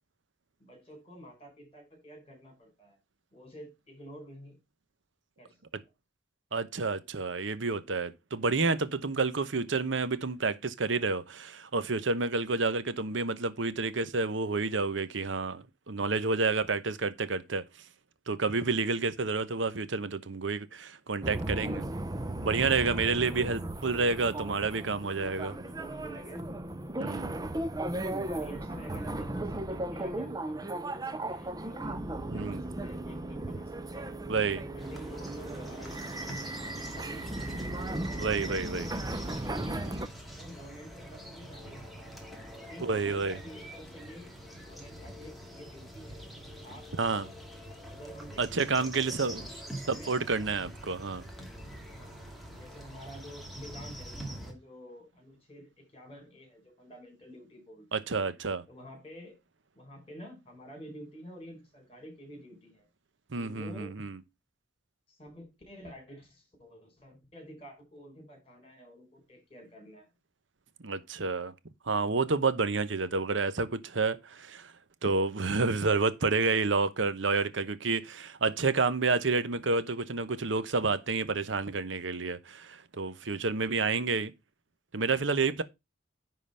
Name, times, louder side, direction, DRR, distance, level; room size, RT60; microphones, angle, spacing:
voice 1, 0.6-3.0 3.3-4.6 5.4-5.6 25.4-26.5 28.2-34.2 34.6-37.9 38.2-40.0 40.4-42.2 42.5-44.3 44.6-46.2 46.5-47.4 47.7-50.1 51.9-58.1 58.7-59.4 59.7-62.9 63.4-63.9 65.1-70.1, equal, 30° left, 4.5 m, -49 dB
voice 2, 6.5-17.6 18.3-21.8 22.4-25.5 27.0-27.3 32.3-32.6 34.3-34.6 38.2-38.9 42.8-43.4 47.0-47.3 48.4-49.4 49.9-51.2 57.9-58.6 63.3-64.2 70.8-71.5 71.9-74.7 75.0-84.3 84.9-85.6, right 4 dB, 75° right, 0.9 m, -29 dB
sound 1, 21.2-40.1, right 1 dB, 20° right, 0.6 m, -36 dB
sound 2, 34.8-54.5, right 1 dB, ahead, 2.0 m, -45 dB
10.0 x 3.9 x 5.5 m
head